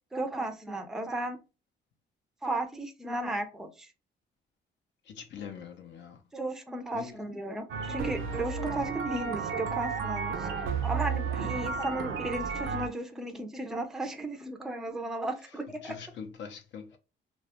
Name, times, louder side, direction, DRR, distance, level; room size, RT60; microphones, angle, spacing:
voice 1, 0.1-1.4 2.4-3.9 6.3-10.5 10.8-15.9, right 1 dB, ahead, 0.4 m, -35 dB
voice 2, 5.1-6.2 6.9-7.2 11.4-11.7 15.8-17.0, left 7 dB, 70° left, 0.5 m, -43 dB
sound 1, 7.7-12.9, right 6 dB, 80° right, 0.4 m, -32 dB
2.2 x 2.0 x 2.7 m
cardioid pair, 90°, 20 cm